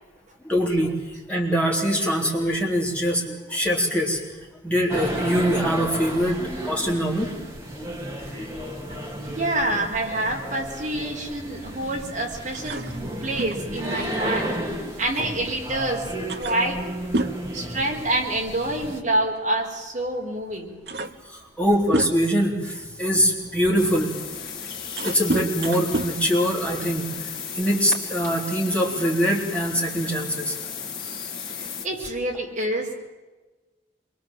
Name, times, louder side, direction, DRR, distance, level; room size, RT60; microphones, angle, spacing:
voice 1, 0.4-1.0 1.3-6.4 6.7-7.3 15.2-15.3 21.3-24.1 25.0-27.1 27.5-30.6, equal, 5° left, -2 dB, 3.7 m, -23 dB
sound 1, 4.9-19.0, right 1 dB, 15° right, 2.9 m, -33 dB
voice 2, 9.2-12.9 13.2-14.5 15.0-16.1 16.4-16.8 17.5-20.7 29.8-29.9 31.5-33.0, right 1 dB, 40° right, 0 dB, 4.2 m, -27 dB
sound 2, 12.5-15.6 15.9-16.0 16.3-18.5 18.7-19.0 20.0-20.1 20.5-22.5 23.1-27.2, right 2 dB, 65° right, 1.3 m, -31 dB
sound 3, 23.8-31.9, left 6 dB, 50° left, 2.6 m, -35 dB
27.5 x 23.5 x 7.7 m, 1.2 s
head